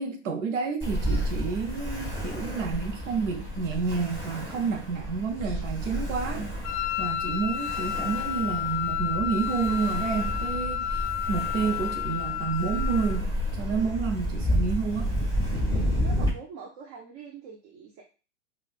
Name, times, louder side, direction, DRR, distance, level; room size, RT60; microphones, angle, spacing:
voice 1, 0.0-6.5 7.0-15.2, right 5 dB, 75° right, 0.7 m, -30 dB
Ocean, 0.8-16.3, equal, 15° right, 1.9 m, -31 dB
Wind instrument woodwind instrument, 6.6-13.2, left 11 dB, 60° left, 0.5 m, -31 dB
voice 2, 16.0-18.0, right 5 dB, 30° right, 0.6 m, -44 dB
5.2 x 2.4 x 2.4 m
hypercardioid pair, 130°, 37 cm